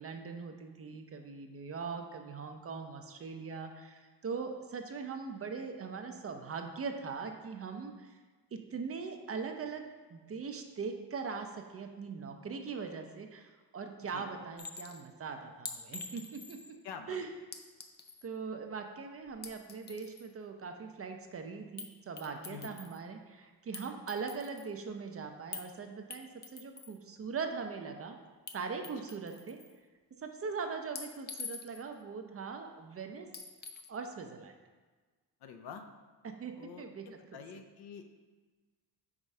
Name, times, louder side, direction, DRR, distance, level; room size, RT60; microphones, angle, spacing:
voice 1, 0.0-8.2 8.5-9.8 10.1-16.8 17.1-17.3 18.2-28.2 28.5-29.6 30.2-33.3 33.9-34.5 36.2-37.2, right 5 dB, 30° right, 5 dB, 0.6 m, -41 dB
Chink clink, 14.6-15.0 15.7-16.7 17.5-18.3 19.3-20.3 21.8-21.9 22.2-23.0 23.7-24.7 25.5-25.7 26.1-27.0 28.5-28.6 28.8-29.7 31.0-31.9 33.3-33.9, left 5 dB, 25° left, 0.5 m, -45 dB
voice 2, 16.8-17.2 22.5-22.7 35.4-35.8 36.6-38.1, left 6 dB, 60° left, 6 dB, 0.7 m, -47 dB
4.8 x 3.7 x 5.4 m, 1.4 s
cardioid pair, 95°, 44 cm